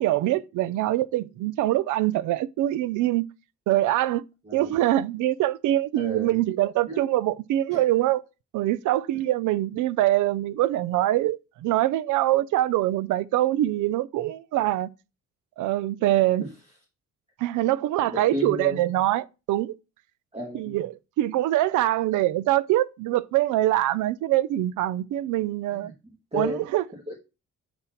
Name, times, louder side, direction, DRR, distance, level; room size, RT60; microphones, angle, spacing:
voice 1, 0.0-3.3 3.7-4.2 4.5-8.2 8.5-14.9 15.6-16.4 17.4-19.7 20.5-25.9 26.3-26.8, right 14 dB, 85° right, 0.5 m, -24 dB
voice 2, 4.4-4.7 5.9-6.4 6.9-7.0 7.7-7.8 9.1-9.2 14.5-14.7 16.4-16.5 18.0-18.8 20.3-20.8 25.7-26.6 26.9-27.2, left 1 dB, 20° right, 1.5 m, -34 dB
6.1 x 3.8 x 5.7 m
cardioid pair, 90°, 30 cm